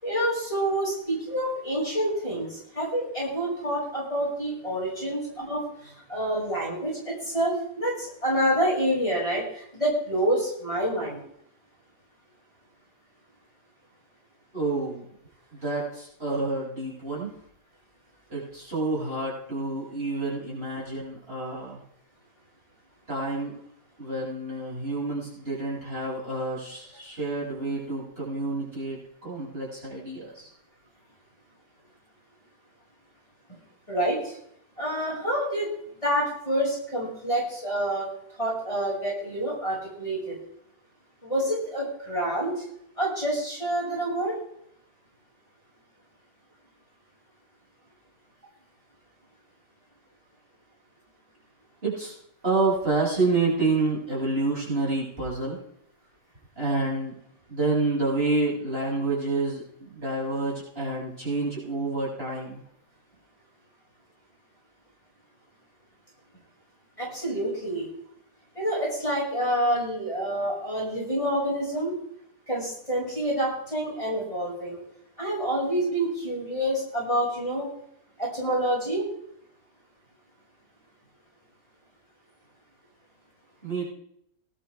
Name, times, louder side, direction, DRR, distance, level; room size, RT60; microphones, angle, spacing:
voice 1, 0.0-11.2 33.9-34.4 34.8-35.7 36.0-38.1 38.4-40.3 41.2-42.6 43.0-44.3 67.0-67.9 68.5-71.9 72.5-74.8 75.2-77.7 78.2-79.0, right 1 dB, 15° left, -6 dB, 6.8 m, -27 dB
voice 2, 14.5-15.0 15.5-17.3 18.3-21.8 23.1-23.6 24.0-30.5 51.8-52.1 52.4-55.6 56.6-57.2 57.5-62.6 83.6-83.9, right 2 dB, 30° right, -7 dB, 7.9 m, -28 dB
19.5 x 12.5 x 3.7 m, 0.71 s
omnidirectional pair, 1.9 m